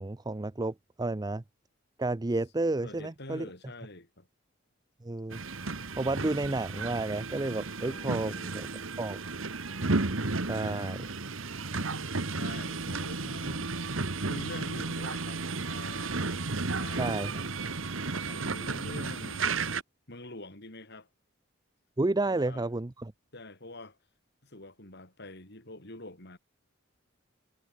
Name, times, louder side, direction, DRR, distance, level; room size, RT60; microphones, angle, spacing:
voice 1, 0.0-1.4 2.0-3.5 5.0-5.4 6.0-9.2 10.5-11.0 17.0-17.3 22.0-23.1, right 2 dB, 20° right, 0.5 m, -31 dB
voice 2, 2.8-4.3 7.8-8.5 10.6-11.1 11.7-12.1 12.4-13.7 14.2-16.2 16.6-17.4 18.3-19.5 20.1-21.1 22.3-22.7 23.3-24.0 24.4-26.4, left 2 dB, 55° left, 6.7 m, -46 dB
sound 1, 5.3-19.8, right 3 dB, 75° right, 1.7 m, -33 dB
head